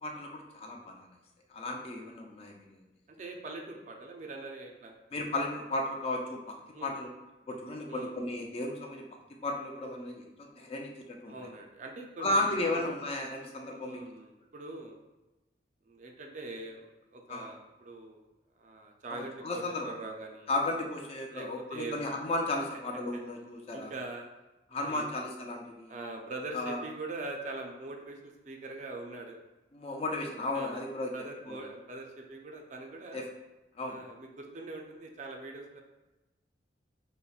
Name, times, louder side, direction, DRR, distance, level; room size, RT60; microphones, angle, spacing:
voice 1, 0.0-1.1 1.5-2.8 5.1-7.1 7.5-9.1 9.4-11.4 12.2-14.0 17.3-17.5 19.1-19.9 20.5-23.9 24.7-25.9 26.5-26.8 29.7-31.1 31.5-31.6 33.1-33.2 33.8-34.0, left 2 dB, 35° left, 2 dB, 0.4 m, -34 dB
voice 2, 3.2-5.0 6.7-7.0 7.9-8.1 11.3-12.9 13.7-15.0 15.9-18.2 18.6-20.5 21.3-22.0 23.7-24.3 24.7-25.1 25.9-29.4 30.5-30.8 31.1-33.2 33.8-35.8, right 2 dB, 40° right, 2 dB, 0.4 m, -42 dB
5.2 x 2.1 x 2.3 m, 1.1 s
head